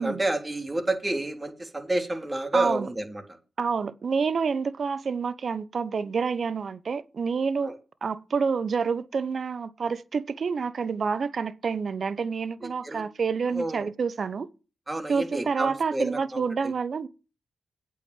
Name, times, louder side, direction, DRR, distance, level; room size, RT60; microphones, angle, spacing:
voice 1, 0.0-3.2 7.6-7.8 12.6-13.0 13.5-13.9 14.9-16.7, right 2 dB, 20° right, 3.4 m, -30 dB
voice 2, 2.5-2.9 3.6-7.7 8.0-14.5 15.1-17.1, right 5 dB, 60° right, 0.9 m, -28 dB
8.5 x 6.3 x 7.3 m
supercardioid pair, 50°, 0 cm